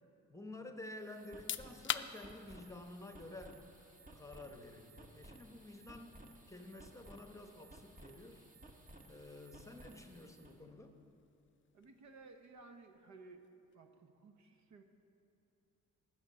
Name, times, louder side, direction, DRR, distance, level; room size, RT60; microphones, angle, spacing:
voice 1, 0.3-3.6 4.1-8.4 9.1-11.0, left 2 dB, 10° left, 5 dB, 0.9 m, -51 dB
sound 1, 0.8-10.6, right 1 dB, 25° right, 1.3 m, -58 dB
sound 2, 1.2-13.9, left 10 dB, 40° left, 0.4 m, -50 dB
voice 2, 11.7-13.5 13.7-14.8, right 3 dB, 70° right, 6 dB, 1.1 m, -57 dB
12.0 x 6.7 x 8.5 m, 2.7 s
cardioid pair, 90°, 30 cm